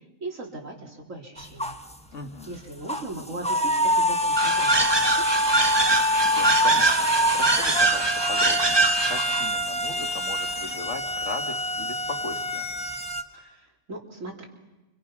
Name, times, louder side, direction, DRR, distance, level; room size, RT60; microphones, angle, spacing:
voice 1, 0.2-1.8 2.5-4.9 5.2-5.4 13.3-14.5, right 2 dB, 85° right, 0 dB, 4.1 m, -38 dB
sound 1, 1.4-1.9 2.4-2.5 2.9-13.2, equal, 5° left, 1.1 m, -25 dB
voice 2, 2.1-2.6 6.2-12.7, left 3 dB, 65° left, 5 dB, 2.1 m, -38 dB
sound 2, 4.4-9.5, right 3 dB, 20° right, 1.1 m, -23 dB
29.5 x 25.5 x 6.1 m, 1.1 s
omnidirectional pair, 1.3 m